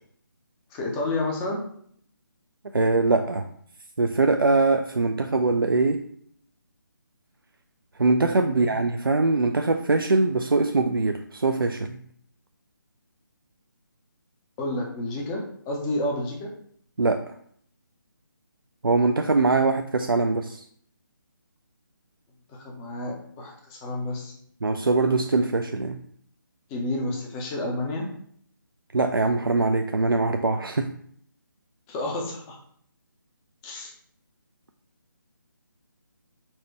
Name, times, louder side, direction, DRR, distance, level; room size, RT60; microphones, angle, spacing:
voice 1, 0.7-1.6 8.5-8.7 14.6-16.5 22.5-24.3 26.7-28.1 31.9-32.6 33.6-33.9, left 2 dB, 10° left, 0 dB, 0.4 m, -30 dB
voice 2, 2.7-3.5 4.0-6.0 8.0-12.0 17.0-17.2 18.8-20.6 24.6-26.0 28.9-30.9, right 3 dB, 80° right, 5 dB, 0.4 m, -22 dB
4.3 x 2.1 x 4.5 m, 0.63 s
figure-of-eight pair, 150°, 11 cm